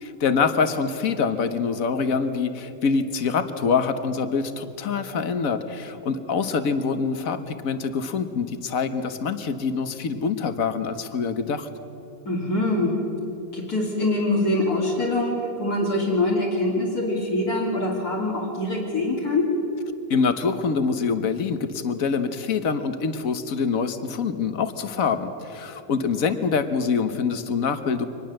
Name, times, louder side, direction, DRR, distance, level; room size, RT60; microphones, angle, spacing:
voice 1, 0.0-11.7 20.1-28.1, left 5 dB, 65° left, 9 dB, 1.6 m, -25 dB
voice 2, 12.3-12.9 13.5-19.5, left 2 dB, 80° left, -4 dB, 3.6 m, -24 dB
24.5 x 20.0 x 7.7 m, 3.0 s
omnidirectional pair, 1.6 m